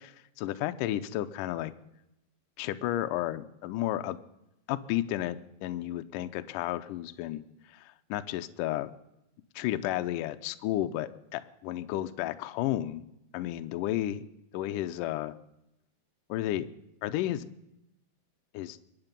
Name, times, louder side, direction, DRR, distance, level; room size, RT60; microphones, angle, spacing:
voice 1, 0.0-1.7 2.6-4.2 4.7-7.4 7.7-8.9 9.6-13.1 13.3-14.2 14.5-15.3 16.3-16.7 17.0-17.5 18.5-18.8, left 14 dB, 85° left, 10 dB, 1.9 m, -32 dB
23.5 x 9.8 x 5.2 m, 0.88 s
omnidirectional pair, 4.6 m